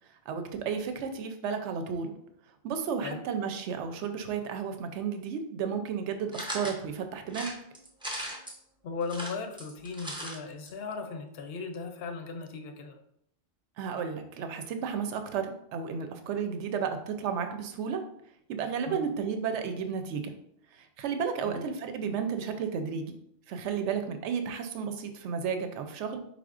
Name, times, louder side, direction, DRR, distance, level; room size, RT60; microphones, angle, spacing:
voice 1, 0.3-2.2 2.6-7.5 13.8-18.0 18.5-20.3 21.0-23.1 23.5-26.2, right 6 dB, 75° right, 7 dB, 0.9 m, -33 dB
sound 1, 6.3-6.8 7.3-8.6 9.0-10.4 10.7-10.8 11.0-11.1, equal, 5° right, 0.4 m, -38 dB
voice 2, 8.8-13.0 18.9-19.1 21.4-21.6, left 4 dB, 60° left, 6 dB, 0.7 m, -37 dB
4.9 x 3.6 x 2.4 m, 0.73 s
omnidirectional pair, 1.3 m